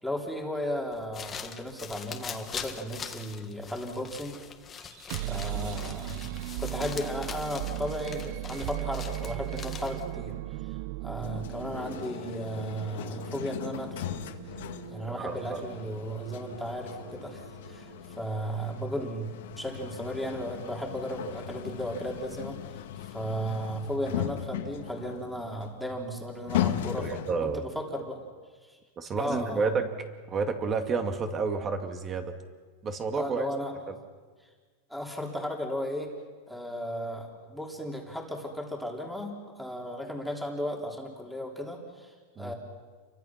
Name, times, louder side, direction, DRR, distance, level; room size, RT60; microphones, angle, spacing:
voice 1, 0.0-4.4 5.2-14.2 14.9-28.2 28.6-28.8 29.2-29.8 33.2-33.7 34.9-36.1 36.5-42.5, equal, ahead, 0 dB, 3.4 m, -35 dB
sound 1, 0.9-10.2, left 7 dB, 20° left, 1.7 m, -42 dB
sound 2, 4.8-18.7, right 17 dB, 55° right, 0.7 m, -38 dB
sound 3, 11.2-27.6, left 11 dB, 75° left, 2.0 m, -38 dB
voice 2, 15.0-15.6 27.0-27.6 29.0-29.9 30.3-32.3 32.8-33.5 33.9-34.0 42.4-42.5, right 4 dB, 25° right, 6 dB, 2.4 m, -30 dB
30.0 x 24.0 x 6.0 m, 1.5 s
supercardioid pair, 150°, 0 cm